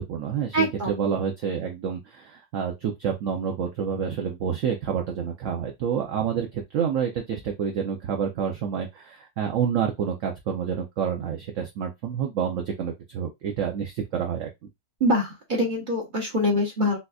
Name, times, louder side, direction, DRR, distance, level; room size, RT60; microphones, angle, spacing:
voice 1, 0.0-14.5, right 7 dB, 65° right, 2 dB, 0.8 m, -28 dB
voice 2, 0.5-1.1 15.0-17.0, equal, 35° right, -1 dB, 0.9 m, -24 dB
4.1 x 2.5 x 2.3 m, 0.20 s
omnidirectional pair, 1.7 m